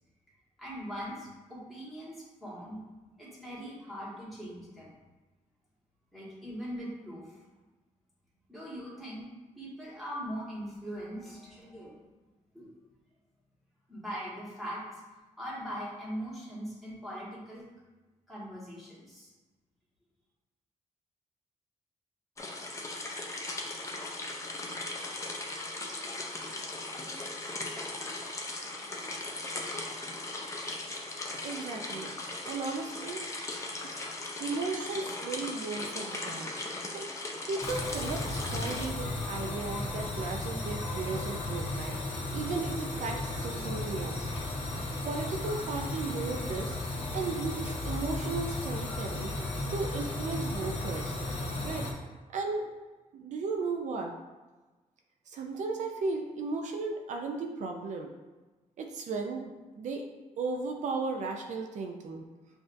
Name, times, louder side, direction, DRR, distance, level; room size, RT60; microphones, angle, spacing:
voice 1, 0.6-2.8 3.2-4.9 6.1-7.4 8.5-9.3 9.6-11.9 12.5-12.7 13.9-15.0 15.4-17.6 18.3-19.3, equal, ahead, -8 dB, 1.5 m, -41 dB
sound 1, 22.4-38.9, left 2 dB, 25° left, 0.5 m, -38 dB
voice 2, 31.4-32.1 32.4-33.2 34.4-36.5 36.9-44.3 45.0-46.8 47.1-49.3 49.7-51.2 51.6-51.9 52.3-52.7 53.1-54.1 55.3-58.1 58.8-60.0 60.4-62.2, right 4 dB, 70° right, 3 dB, 0.5 m, -35 dB
sound 2, 37.6-51.9, left 2 dB, 45° left, 1.0 m, -35 dB
6.9 x 2.6 x 2.6 m, 1.2 s
wide cardioid pair, 165°, 13 cm